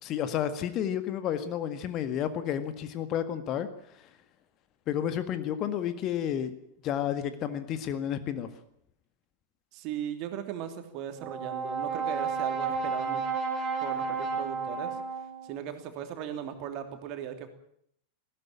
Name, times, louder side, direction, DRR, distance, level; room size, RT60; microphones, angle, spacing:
voice 1, 0.0-3.7 3.9-4.0 4.9-6.5 6.8-8.5, left 10 dB, 35° left, 11 dB, 1.8 m, -31 dB
voice 2, 9.7-13.3 13.8-15.0 15.4-17.5, right 9 dB, 40° right, 7 dB, 3.1 m, -38 dB
Brass instrument, 11.2-15.6, right 5 dB, 20° right, 5.8 m, -32 dB
19.5 x 16.5 x 8.9 m, 0.70 s
figure-of-eight pair, 90°, 0 cm